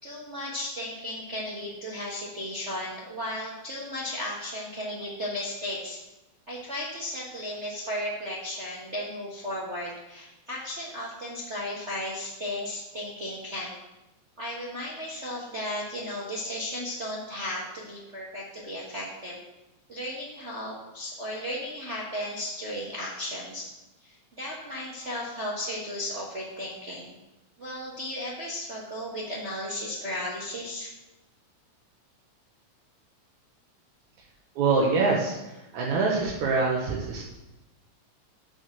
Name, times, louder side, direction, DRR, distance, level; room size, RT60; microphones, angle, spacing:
voice 1, 0.0-6.0 6.5-13.7 14.4-19.4 19.9-23.7 24.0-27.1 27.6-30.9, left 1 dB, 35° right, -5 dB, 1.2 m, -35 dB
voice 2, 34.6-35.4 35.7-37.2, right 4 dB, 80° right, -4 dB, 2.6 m, -24 dB
8.5 x 6.6 x 6.0 m, 0.99 s
omnidirectional pair, 3.3 m